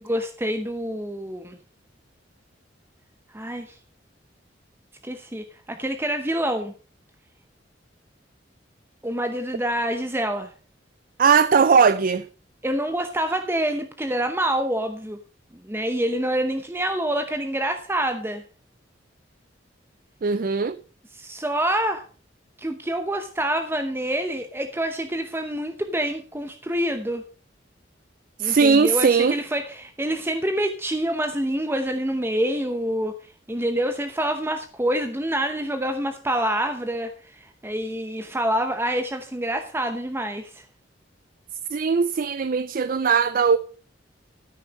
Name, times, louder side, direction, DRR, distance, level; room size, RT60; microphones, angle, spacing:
voice 1, 0.0-1.6 3.3-3.8 5.0-6.7 9.0-10.5 12.6-15.2 15.6-18.4 21.1-22.0 22.6-27.2 28.4-33.1 33.5-40.6, right 1 dB, 15° right, 0.8 m, -26 dB
voice 2, 11.2-12.3 20.2-20.8 28.4-29.4 41.7-43.6, right 5 dB, 50° right, 0.4 m, -19 dB
13.0 x 6.5 x 5.3 m
head